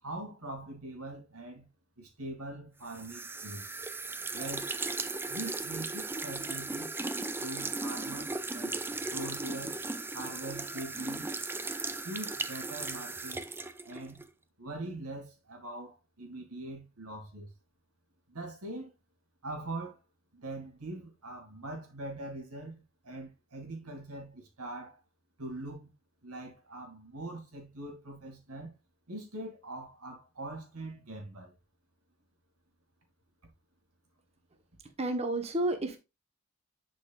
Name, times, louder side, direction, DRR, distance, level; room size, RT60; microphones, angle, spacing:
voice 1, 0.0-1.7 2.0-3.7 4.3-4.7 5.3-9.8 10.1-11.4 12.0-13.6 13.8-14.2 14.6-17.5 18.3-18.9 19.4-20.0 20.3-25.0 25.4-25.9 26.2-28.8 29.1-31.5, right 2 dB, 85° right, 2.5 m, -42 dB
sound 1, 2.9-14.3, right 3 dB, 10° right, 0.4 m, -37 dB
voice 2, 34.8-36.0, right 1 dB, 30° right, 1.1 m, -31 dB
11.0 x 5.2 x 2.4 m
head